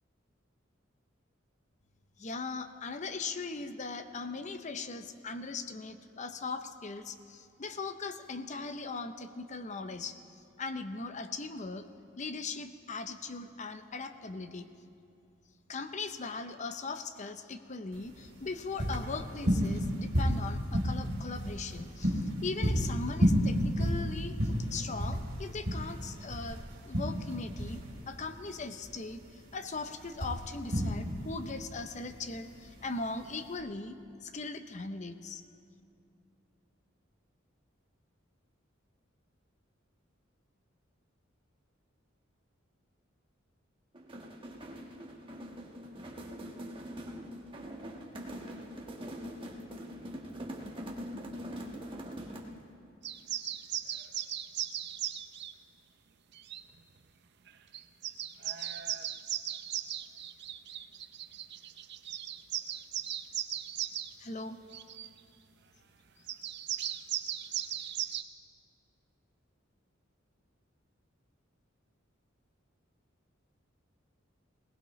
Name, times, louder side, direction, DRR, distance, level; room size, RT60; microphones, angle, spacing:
voice 1, 2.2-10.2 10.6-11.9 12.2-14.7 15.7-24.3 24.7-35.4 64.2-64.6, left 3 dB, 35° left, 10 dB, 0.7 m, -39 dB
sound 1, 17.9-33.6, equal, 75° right, 3.2 m, -32 dB
sound 2, 43.9-52.6, equal, 25° right, 1.4 m, -43 dB
sound 3, 53.0-55.5 56.3-56.6 57.5-57.6 57.7-64.1 64.7-65.1 66.3-68.2, right 11 dB, 55° right, 0.6 m, -37 dB
21.0 x 18.5 x 3.1 m, 2.6 s
head